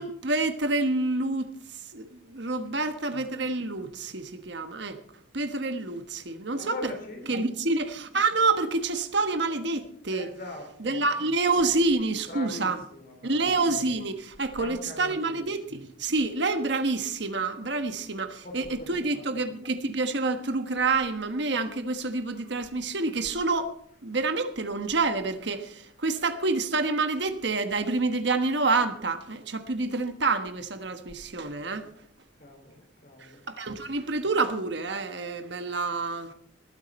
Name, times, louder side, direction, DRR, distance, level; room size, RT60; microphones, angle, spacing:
voice 1, 0.0-1.5 1.9-5.0 5.3-6.9 7.3-10.3 10.8-12.8 13.2-23.7 24.0-31.9 33.5-36.3, right 3 dB, 60° right, 1.3 m, -28 dB
voice 2, 6.4-7.4 10.1-11.1 12.2-13.5 14.5-15.6 18.4-19.4 21.9-22.0 32.4-33.4, left 1 dB, 50° left, 4.4 m, -42 dB
20.0 x 9.4 x 4.3 m
head